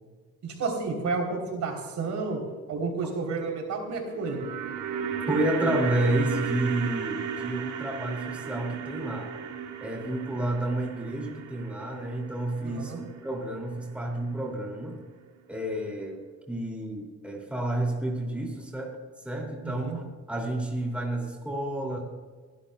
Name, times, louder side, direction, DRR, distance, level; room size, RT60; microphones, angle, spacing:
voice 1, 0.4-2.4 2.7-4.4 12.6-13.0 19.6-20.0, right 4 dB, 65° right, 2 dB, 3.5 m, -31 dB
sound 1, 4.0-14.2 14.5-14.6, right 8 dB, 85° right, 1.6 m, -35 dB
voice 2, 5.3-9.3 9.8-15.0 15.5-16.2 16.5-19.0 19.2-20.0 20.3-22.0, right 1 dB, 5° right, 0 dB, 2.5 m, -30 dB
25.0 x 11.5 x 2.3 m, 1.5 s
cardioid pair, 90°, 30 cm